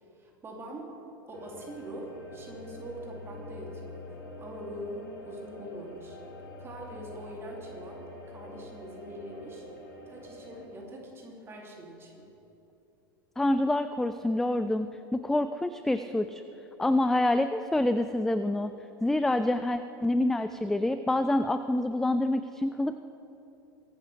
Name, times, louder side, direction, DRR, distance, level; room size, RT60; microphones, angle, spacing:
voice 1, 0.2-0.8 1.3-4.1 4.4-6.2 6.6-9.6 10.1-12.3, right 1 dB, 20° right, -1 dB, 2.9 m, -43 dB
sound 1, 1.3-10.7, left 2 dB, 75° left, 3.3 m, -46 dB
voice 2, 13.4-16.4 16.8-18.7 19.0-23.0, left 1 dB, 5° left, 11 dB, 0.3 m, -27 dB
22.5 x 11.5 x 3.4 m, 2.9 s
figure-of-eight pair, 85°, 12 cm